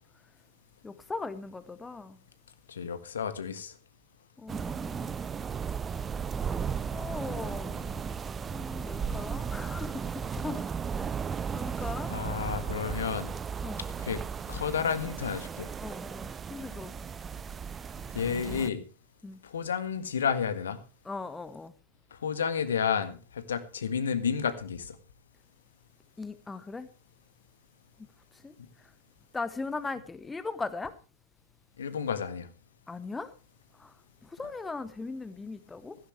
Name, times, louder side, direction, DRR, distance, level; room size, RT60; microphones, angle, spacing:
voice 1, 0.8-2.2 4.4-5.3 6.9-8.0 8.5-10.7 10.9-11.2 11.5-12.1 13.6-13.8 15.8-16.9 19.2-19.4 21.1-21.7 26.2-26.9 28.4-28.5 29.3-30.9 32.9-33.3 33.8-33.9 34.2-36.0, left 3 dB, 10° left, 14 dB, 1.0 m, -39 dB
voice 2, 2.7-3.7 12.1-13.3 14.0-14.2 14.5-15.7 18.1-18.8 19.4-20.8 22.2-25.0 31.8-32.5, left 7 dB, 65° left, 10 dB, 1.7 m, -31 dB
sound 1, 4.5-18.7, right 6 dB, 20° right, 0.6 m, -35 dB
16.0 x 15.0 x 3.3 m, 0.34 s
figure-of-eight pair, 90°, 0 cm